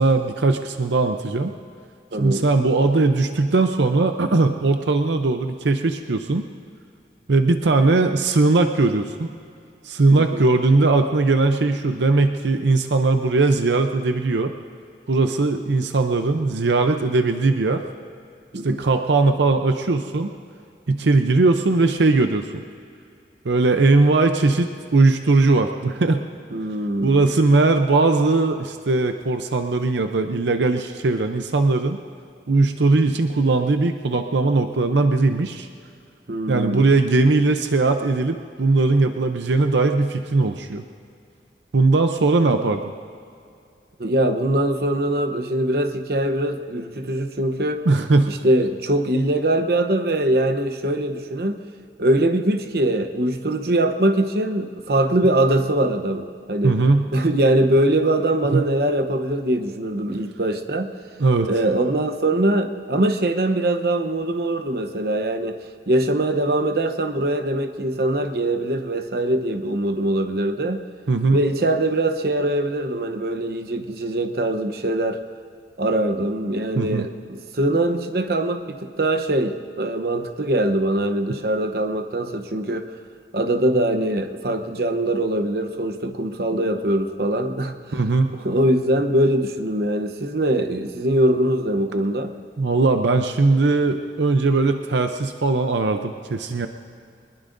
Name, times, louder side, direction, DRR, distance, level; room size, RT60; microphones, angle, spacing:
voice 1, 0.0-1.5 2.2-6.4 7.3-9.3 9.8-14.5 15.1-17.8 18.6-20.3 20.9-22.6 23.4-26.2 27.0-32.0 32.5-35.7 36.5-40.8 41.7-42.9 47.9-48.3 56.6-57.1 58.5-58.6 61.2-61.5 71.1-71.4 76.8-77.1 86.5-86.6 87.9-88.3 92.6-96.7, right 3 dB, 85° right, 6 dB, 0.7 m, -19 dB
voice 2, 2.1-2.5 10.2-10.5 18.5-18.8 26.5-27.2 36.3-36.8 44.0-47.8 48.3-51.6 52.0-56.8 57.1-60.9 61.4-65.6 65.9-70.8 71.3-75.2 75.8-82.9 83.3-88.0 88.3-92.3, right 1 dB, 60° right, 7 dB, 0.9 m, -22 dB
23.0 x 20.5 x 2.6 m, 2.4 s
head